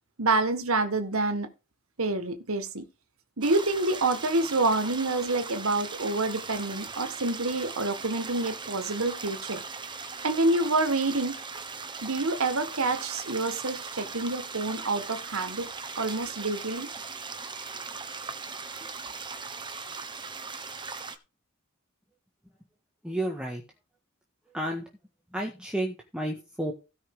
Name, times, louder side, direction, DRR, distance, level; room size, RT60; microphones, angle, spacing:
voice 1, 0.2-1.5 2.0-2.9 3.4-9.6 10.2-11.4 12.0-15.7 16.0-16.9, right 2 dB, 90° right, 1.6 m, -27 dB
sound 1, 3.4-21.2, right 4 dB, 20° right, 1.2 m, -39 dB
voice 2, 23.0-23.6 24.5-24.9 25.3-26.7, right 1 dB, 5° right, 1.6 m, -31 dB
16.5 x 5.6 x 3.8 m
head